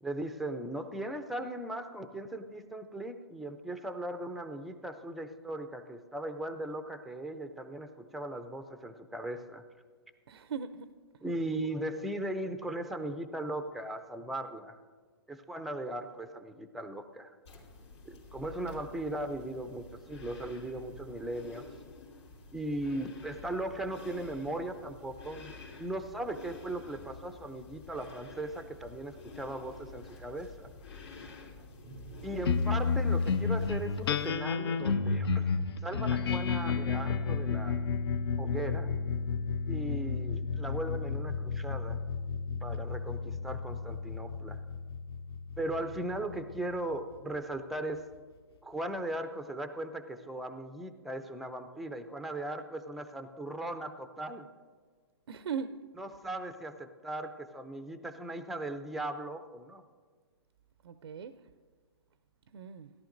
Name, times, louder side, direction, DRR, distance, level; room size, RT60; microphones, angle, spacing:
voice 1, 0.0-9.6 11.2-14.8 15.3-17.3 18.1-21.7 22.5-30.7 32.2-37.8 38.4-38.9 39.7-42.0 42.6-44.6 45.6-48.0 48.6-54.5 56.0-59.8, right 1 dB, ahead, 0.4 m, -38 dB
voice 2, 10.3-10.9 18.6-18.8 55.3-55.9 60.8-61.4 62.5-62.9, right 6 dB, 80° right, 0.5 m, -39 dB
sound 1, 17.4-34.3, left 3 dB, 85° left, 2.9 m, -49 dB
sound 2, 32.4-47.1, left 5 dB, 65° left, 0.7 m, -32 dB
16.5 x 11.5 x 2.6 m
hypercardioid pair, 140°, 14 cm